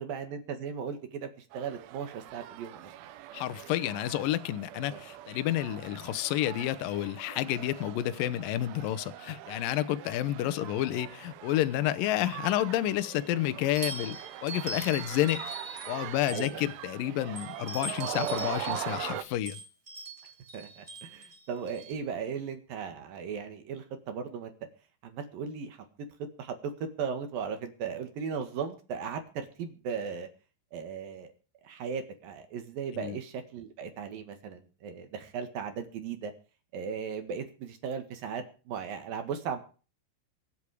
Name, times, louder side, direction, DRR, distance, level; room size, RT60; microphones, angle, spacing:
voice 1, 0.0-3.1 4.8-5.0 16.3-16.6 20.5-24.5 25.0-25.8 26.4-30.3 30.7-31.3 31.6-36.3 36.7-39.6, right 6 dB, 60° right, 8 dB, 3.0 m, -37 dB
sound 1, 1.5-19.2, right 14 dB, 90° right, 3.4 m, -42 dB
voice 2, 3.3-15.4 15.9-19.6 32.9-33.2, left 13 dB, 85° left, 12 dB, 2.0 m, -30 dB
sound 2, 13.7-16.8 17.4-21.9, right 3 dB, 25° right, 2.5 m, -41 dB
24.0 x 8.4 x 4.9 m, 0.37 s
omnidirectional pair, 5.3 m